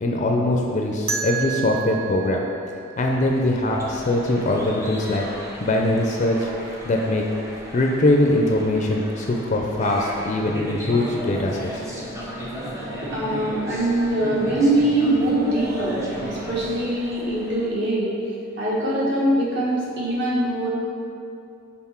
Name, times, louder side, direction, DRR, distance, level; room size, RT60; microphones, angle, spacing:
voice 1, 0.0-2.5 3.0-5.2 5.6-6.5 6.9-7.2 7.7-12.1, left 1 dB, 35° left, 1 dB, 0.4 m, -22 dB
sound 1, 1.1-3.9, right 7 dB, 75° right, 0.7 m, -32 dB
sound 2, 3.0-17.7, right 1 dB, 15° right, 0.7 m, -35 dB
voice 2, 13.0-18.1 18.6-20.7, right 1 dB, 55° right, -6 dB, 1.4 m, -23 dB
5.8 x 3.9 x 4.3 m, 2.6 s
head